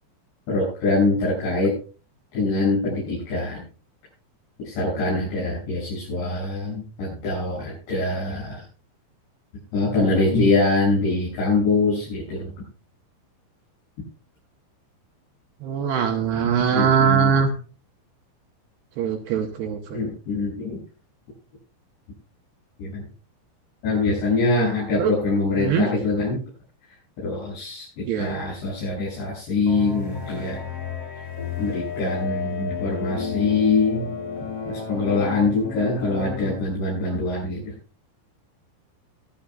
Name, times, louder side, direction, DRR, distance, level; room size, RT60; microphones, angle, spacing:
voice 1, 0.5-1.7 2.3-3.6 4.6-8.6 9.7-12.5 16.7-17.4 19.9-20.8 22.8-23.0 23.8-26.4 27.2-30.6 31.6-34.1 34.7-37.6, left 3 dB, 65° left, -8 dB, 9.5 m, -24 dB
voice 2, 15.6-17.5 19.0-20.0 25.0-25.1 25.6-25.9 28.1-28.4, right 7 dB, 75° right, 5 dB, 2.7 m, -21 dB
sound 1, 29.7-36.6, left 6 dB, 20° left, 2.6 m, -31 dB
24.5 x 10.5 x 2.4 m, 0.36 s
omnidirectional pair, 5.5 m